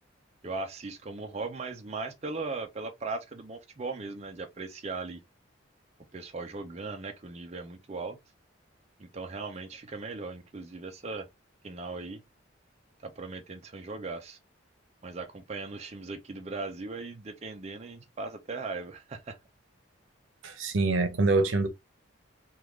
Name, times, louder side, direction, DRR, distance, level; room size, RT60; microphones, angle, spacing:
voice 1, 0.4-5.2 6.1-8.2 9.0-11.3 11.6-12.2 13.0-14.4 15.0-19.4, right 3 dB, 35° right, 0.5 m, -38 dB
voice 2, 20.4-21.7, right 3 dB, 75° right, 0.7 m, -25 dB
3.6 x 2.3 x 3.0 m
head